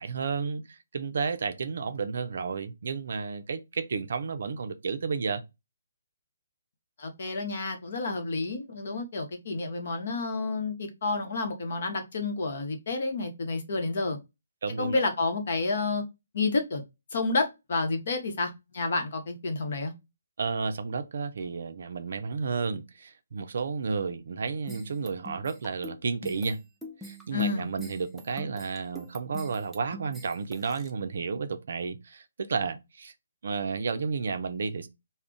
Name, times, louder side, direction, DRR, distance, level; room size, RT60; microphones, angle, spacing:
voice 1, 0.0-5.4 14.6-15.0 20.4-26.6 27.0-33.1 33.4-34.9, right 5 dB, 60° right, 0.4 m, -32 dB
voice 2, 7.0-14.2 14.8-16.0 16.3-16.8 17.1-19.9 27.3-27.7, left 3 dB, 55° left, 0.8 m, -30 dB
sound 1, 24.7-30.9, equal, ahead, 0.4 m, -44 dB
2.3 x 2.1 x 3.7 m
figure-of-eight pair, 145°, 0 cm